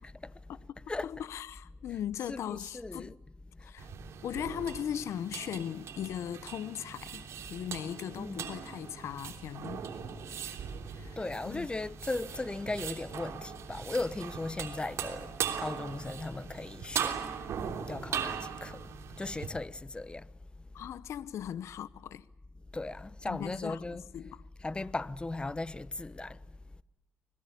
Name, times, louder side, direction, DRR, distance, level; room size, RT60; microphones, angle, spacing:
voice 1, 1.0-3.1 3.6-3.9 4.2-9.9 10.3-10.4 10.9-11.2 11.5-11.7 20.7-22.3 23.3-24.4, left 10 dB, 80° left, 0.8 m, -39 dB
voice 2, 2.3-3.2 3.5-3.7 8.2-8.5 11.2-17.2 17.9-18.9 19.2-20.3 22.7-24.0 24.6-26.4, left 2 dB, 20° left, 1.0 m, -37 dB
sound 1, 3.8-19.5, right 8 dB, 75° right, 3.3 m, -40 dB
25.0 x 20.5 x 8.4 m
cardioid pair, 75°, 5 cm